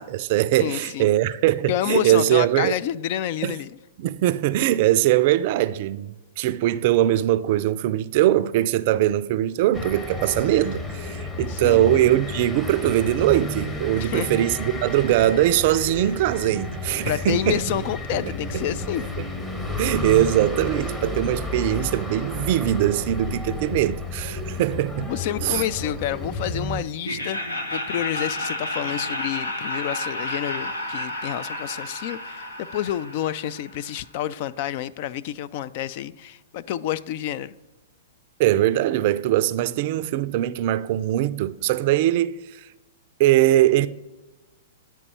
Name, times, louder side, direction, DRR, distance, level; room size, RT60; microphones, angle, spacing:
voice 1, 0.0-2.8 3.4-3.6 4.0-17.6 18.1-18.6 19.0-19.1 19.8-25.1 25.4-25.6 38.4-42.7 43.2-43.9, right 13 dB, 50° right, 0.4 m, -21 dB
voice 2, 0.6-1.1 1.7-3.7 11.5-11.9 13.9-14.4 17.1-19.1 25.0-27.4 27.7-37.5, left 11 dB, 50° left, 0.3 m, -29 dB
sound 1, 9.7-26.8, left 2 dB, 10° left, 0.9 m, -32 dB
Laughter, 27.0-34.0, left 1 dB, 85° left, 1.1 m, -31 dB
9.8 x 4.6 x 4.2 m
hypercardioid pair, 115°, 0 cm